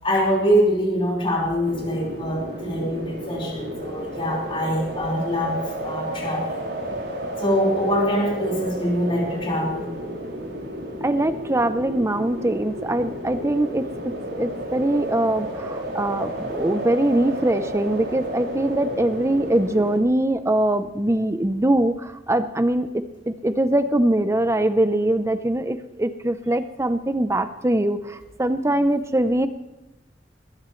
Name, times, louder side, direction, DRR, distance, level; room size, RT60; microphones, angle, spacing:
voice 1, 0.0-5.6 5.8-6.6 7.4-9.9, equal, 30° left, -3 dB, 4.7 m, -24 dB
sound 1, 1.6-20.0, right 1 dB, 75° right, 6.1 m, -32 dB
voice 2, 11.0-29.5, right 1 dB, 15° right, 10 dB, 0.7 m, -22 dB
21.0 x 16.0 x 3.2 m, 1.0 s
head